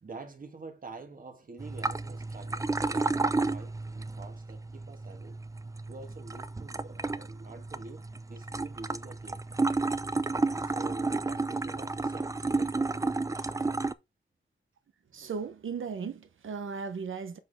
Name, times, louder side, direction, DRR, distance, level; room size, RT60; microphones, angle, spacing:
voice 1, 0.0-5.4 5.9-9.4 10.6-13.6, right 3 dB, 45° right, 1.7 m, -47 dB
sound 1, 1.6-13.9, right 3 dB, 15° right, 0.4 m, -32 dB
voice 2, 15.1-17.4, right 5 dB, 85° right, 1.1 m, -36 dB
7.4 x 4.2 x 3.6 m
wide cardioid pair, 135°, 20 cm